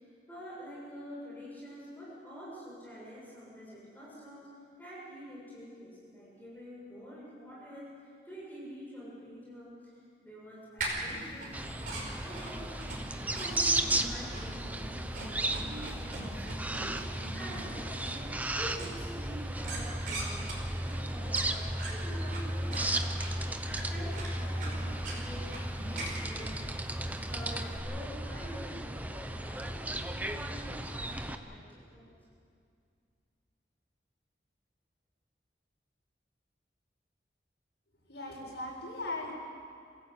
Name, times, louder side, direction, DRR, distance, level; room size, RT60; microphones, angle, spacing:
voice 1, 0.0-4.5 4.8-9.7 10.2-12.8 13.2-14.8 15.1-26.8 27.2-32.2, equal, 10° left, -7 dB, 7.2 m, -47 dB
sound 1, 10.8-27.8, right 2 dB, 50° right, 5.3 m, -43 dB
sound 2, 11.5-31.3, right 1 dB, 10° right, 0.8 m, -35 dB
voice 2, 38.1-39.3, left 2 dB, 75° left, -3 dB, 7.4 m, -38 dB
27.0 x 16.0 x 8.4 m, 2.2 s
head